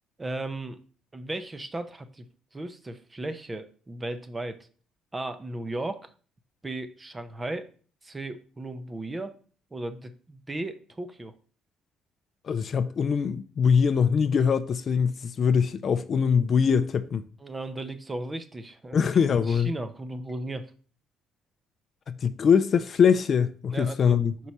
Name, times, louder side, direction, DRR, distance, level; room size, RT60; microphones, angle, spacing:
voice 1, 0.2-0.8 1.1-2.3 2.5-4.6 5.1-6.1 6.6-7.7 8.0-9.3 9.7-11.3 17.4-19.0 19.5-20.7 23.7-24.2 24.4-24.5, right 2 dB, 15° right, 0.5 m, -35 dB
voice 2, 12.5-17.2 18.9-19.7 22.1-24.3, left 6 dB, 40° left, 0.3 m, -23 dB
5.2 x 4.6 x 4.2 m
cardioid pair, 150°, 0 cm